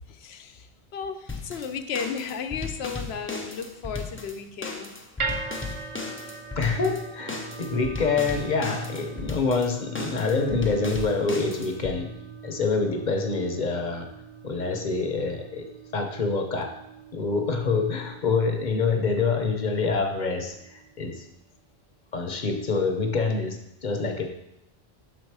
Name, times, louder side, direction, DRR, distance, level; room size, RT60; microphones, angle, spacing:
voice 1, 0.0-5.0, left 6 dB, 90° left, 8 dB, 0.9 m, -34 dB
sound 1, 1.3-12.0, left 3 dB, 15° left, 0.5 m, -36 dB
sound 2, 5.2-21.4, right 4 dB, 50° right, 0.4 m, -41 dB
voice 2, 6.6-12.1 12.4-14.1 14.4-16.7 17.1-21.2 22.1-24.3, left 4 dB, 50° left, 4 dB, 0.8 m, -26 dB
6.2 x 4.3 x 4.7 m, 0.85 s
omnidirectional pair, 1.0 m